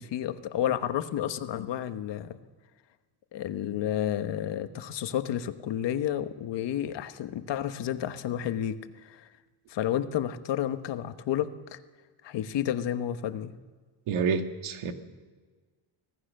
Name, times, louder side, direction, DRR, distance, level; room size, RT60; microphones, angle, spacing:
voice 1, 0.0-2.4 3.3-9.3 9.7-11.8 12.2-13.6, left 11 dB, 60° left, 9 dB, 1.3 m, -31 dB
voice 2, 14.1-14.9, right 5 dB, 90° right, 6 dB, 2.2 m, -28 dB
25.5 x 17.5 x 6.6 m, 1.4 s
cardioid pair, 165°, 47 cm